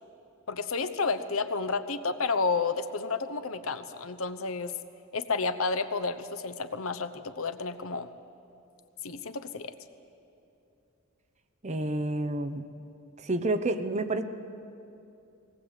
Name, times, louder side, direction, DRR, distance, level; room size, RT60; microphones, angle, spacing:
voice 1, 0.5-4.7 5.1-8.1 9.0-9.7, left 4 dB, 70° left, 10 dB, 0.9 m, -31 dB
voice 2, 11.6-12.6 13.2-14.2, right 2 dB, 30° right, 9 dB, 0.9 m, -29 dB
20.5 x 19.0 x 8.2 m, 2.7 s
head